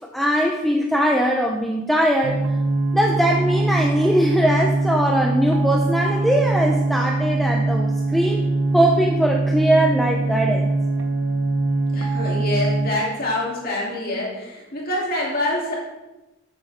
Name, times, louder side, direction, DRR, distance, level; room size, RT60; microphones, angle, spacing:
voice 1, 0.1-2.4 2.9-8.4 8.7-10.7, equal, ahead, 1 dB, 0.6 m, -20 dB
sound 1, 2.2-12.9, right 2 dB, 75° right, 1.3 m, -22 dB
voice 2, 11.9-15.8, left 1 dB, 50° left, -4 dB, 2.8 m, -26 dB
12.0 x 8.0 x 3.6 m, 1.0 s
head